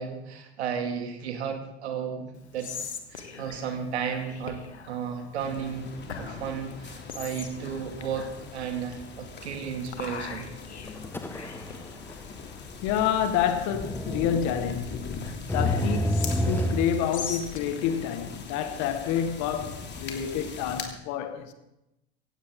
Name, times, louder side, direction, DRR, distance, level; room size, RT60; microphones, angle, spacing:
voice 1, 0.0-2.3 2.5-2.7 3.1-4.6 4.9-5.9 6.2-10.5, right 7 dB, 80° right, 2.6 m, -33 dB
Whispering, 2.3-19.9, left 6 dB, 90° left, 1.6 m, -43 dB
sound 1, 5.4-20.9, left 5 dB, 30° left, 3.0 m, -41 dB
sound 2, 10.9-11.8 12.1-12.2 13.7-16.9, left 1 dB, 5° left, 1.5 m, -29 dB
voice 2, 12.8-15.1 15.4-21.5, left 9 dB, 55° left, 1.7 m, -28 dB
17.0 x 16.5 x 3.8 m
hypercardioid pair, 80°, 33 cm